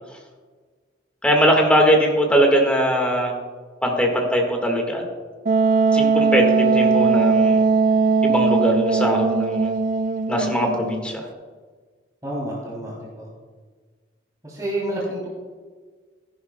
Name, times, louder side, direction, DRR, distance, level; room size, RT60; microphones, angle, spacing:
voice 1, 1.2-3.3 3.8-5.0 5.9-7.6 8.2-9.7 10.3-11.2, equal, 5° left, 1 dB, 1.6 m, -20 dB
Wind instrument woodwind instrument, 5.4-11.0, right 4 dB, 45° right, 0.4 m, -19 dB
voice 2, 12.2-13.3 14.4-15.3, right 1 dB, 20° right, -6 dB, 3.0 m, -29 dB
16.0 x 10.5 x 2.2 m, 1.5 s
head